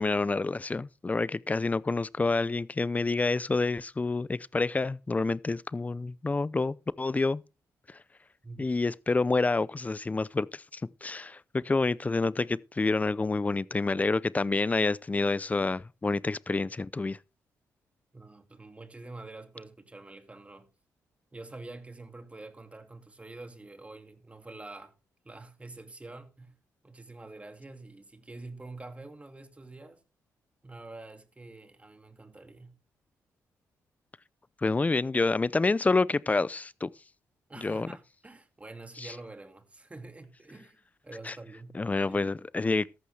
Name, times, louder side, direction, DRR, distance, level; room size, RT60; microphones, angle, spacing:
voice 1, 0.0-7.4 8.6-17.2 34.6-36.9 37.6-37.9 39.0-39.1 41.3-41.4 41.7-42.9, left 3 dB, 25° left, 0.6 m, -28 dB
voice 2, 18.1-20.7 21.3-24.9 25.2-26.5 26.8-30.0 30.6-32.7 37.5-40.8 41.0-41.8 42.1-42.3, right 2 dB, 20° right, 2.3 m, -46 dB
14.0 x 11.5 x 3.4 m
cardioid pair, 80°, 7 cm